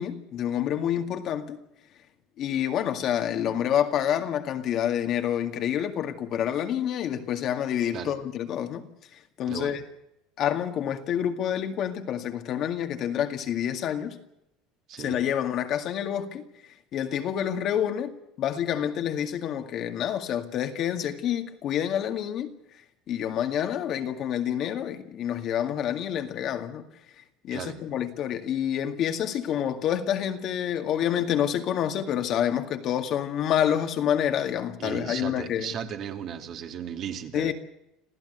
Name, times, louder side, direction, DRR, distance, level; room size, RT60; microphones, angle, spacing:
voice 1, 0.0-1.6 2.4-8.8 9.4-9.8 10.4-14.2 15.0-16.4 16.9-18.1 18.4-22.5 23.1-26.8 27.4-35.7 37.3-37.5, left 10 dB, 45° left, 2.1 m, -28 dB
voice 2, 9.5-9.8 14.9-15.2 27.5-27.8 34.8-37.5, right 8 dB, 45° right, 2.6 m, -36 dB
26.5 x 15.0 x 8.1 m
supercardioid pair, 135°, 0 cm